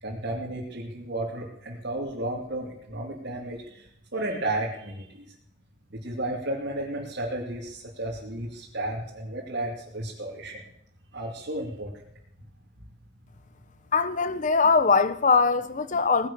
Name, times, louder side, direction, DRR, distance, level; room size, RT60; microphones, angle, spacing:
voice 1, 0.0-5.3 5.9-10.6 11.1-11.9, right 1 dB, 60° right, 2.8 m, -33 dB
voice 2, 13.9-16.3, left 4 dB, 40° left, 0.9 m, -22 dB
18.5 x 10.5 x 6.9 m
head